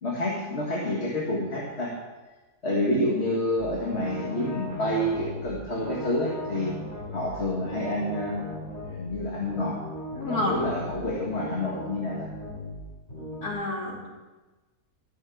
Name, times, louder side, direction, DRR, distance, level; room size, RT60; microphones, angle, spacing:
voice 1, 0.0-1.9 2.6-6.8 7.1-8.4 8.9-9.8 10.3-12.3, left 1 dB, 45° left, -3 dB, 2.1 m, -28 dB
sound 1, 3.5-13.5, left 1 dB, 25° left, 4.3 m, -38 dB
voice 2, 10.1-10.6 13.4-14.1, left 1 dB, 90° left, -3 dB, 3.3 m, -29 dB
14.0 x 6.7 x 7.1 m, 1.2 s
omnidirectional pair, 1.6 m